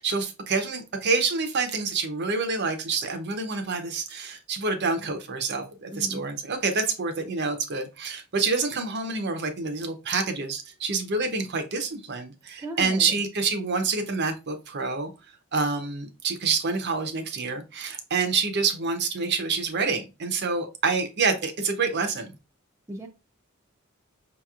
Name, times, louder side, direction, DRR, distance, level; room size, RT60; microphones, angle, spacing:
voice 1, 0.0-15.1 15.5-22.3, right 4 dB, 55° right, 0.7 m, -27 dB
voice 2, 5.9-6.2 12.6-13.2 22.9-23.1, right 1 dB, 15° right, 0.6 m, -36 dB
5.5 x 2.9 x 2.4 m
head